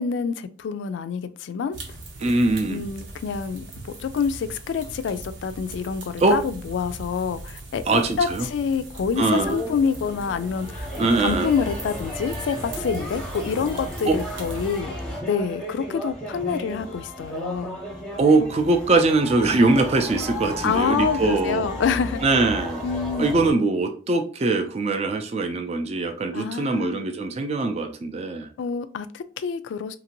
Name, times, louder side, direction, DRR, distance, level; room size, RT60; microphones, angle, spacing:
voice 1, 0.0-1.8 2.7-7.8 8.2-10.9 11.2-14.9 15.3-17.8 20.6-22.2 22.8-23.3 26.3-27.1 28.6-30.0, left 6 dB, 80° left, 0.3 m, -27 dB
sound 1, 1.7-14.8, right 2 dB, 80° right, 0.8 m, -40 dB
voice 2, 2.2-2.8 6.2-6.4 7.9-8.5 9.2-9.6 11.0-11.5 14.1-14.2 18.2-21.6 22.2-22.8 23.2-28.5, right 3 dB, 35° right, 0.4 m, -22 dB
sound 2, 9.1-23.5, equal, 5° left, 0.7 m, -33 dB
2.9 x 2.6 x 2.8 m
head